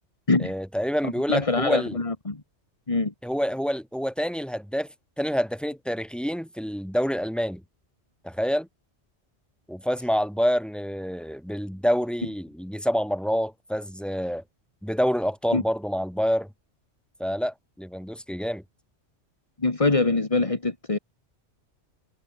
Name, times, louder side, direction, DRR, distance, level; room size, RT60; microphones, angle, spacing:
voice 1, 0.4-2.0 3.2-4.9 5.2-7.6 8.2-8.7 9.7-14.4 14.8-16.5 17.2-18.6, equal, ahead, 6.7 m, -27 dB
voice 2, 1.0-2.4 2.9-3.1 15.5-15.6 19.6-21.0, left 3 dB, 30° left, 1.9 m, -24 dB
omnidirectional pair, 1.2 m